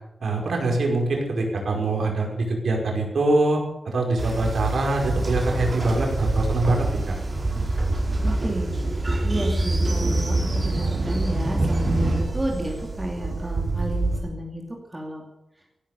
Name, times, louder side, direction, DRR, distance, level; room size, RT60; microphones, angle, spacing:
voice 1, 0.2-3.6 3.9-7.1, right 2 dB, 80° right, 1 dB, 5.6 m, -24 dB
Train, 4.2-14.2, right 2 dB, 30° right, 4.5 m, -25 dB
voice 2, 8.2-15.2, right 1 dB, 15° right, 0 dB, 2.7 m, -32 dB
16.5 x 12.5 x 6.9 m, 0.90 s
wide cardioid pair, 155°, 0 cm